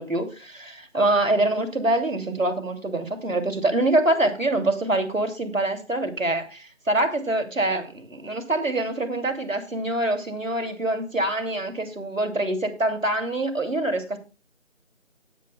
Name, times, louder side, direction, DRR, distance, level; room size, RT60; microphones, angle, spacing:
voice 1, 0.0-14.2, right 2 dB, 85° right, 6 dB, 2.8 m, -25 dB
18.0 x 8.7 x 2.3 m, 0.32 s
figure-of-eight pair, 175°, 39 cm